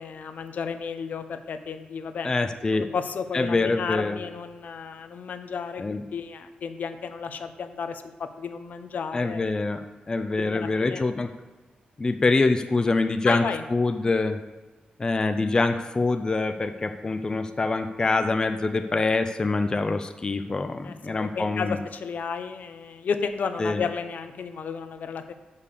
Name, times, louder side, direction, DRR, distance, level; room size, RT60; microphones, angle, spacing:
voice 1, 0.0-2.3 2.8-5.8 6.1-9.5 10.4-11.0 13.2-13.6 20.8-25.3, left 6 dB, 70° left, 9 dB, 0.6 m, -32 dB
voice 2, 2.2-2.9 3.3-4.2 5.8-6.0 9.1-11.3 12.0-13.4 13.7-14.4 15.0-21.8 23.6-23.8, left 3 dB, 25° left, 7 dB, 0.4 m, -25 dB
6.6 x 5.5 x 6.7 m, 1.2 s
wide cardioid pair, 130°, 3 cm